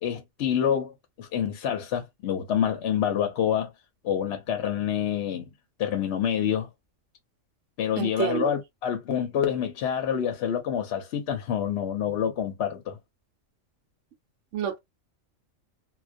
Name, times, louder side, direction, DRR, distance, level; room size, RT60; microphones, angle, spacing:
voice 1, 0.0-3.7 4.0-5.5 5.8-6.7 7.8-13.0, left 9 dB, 60° left, 0.9 m, -27 dB
voice 2, 8.0-8.5 14.5-14.8, right 9 dB, 70° right, 0.9 m, -28 dB
2.2 x 2.2 x 2.5 m
omnidirectional pair, 1.3 m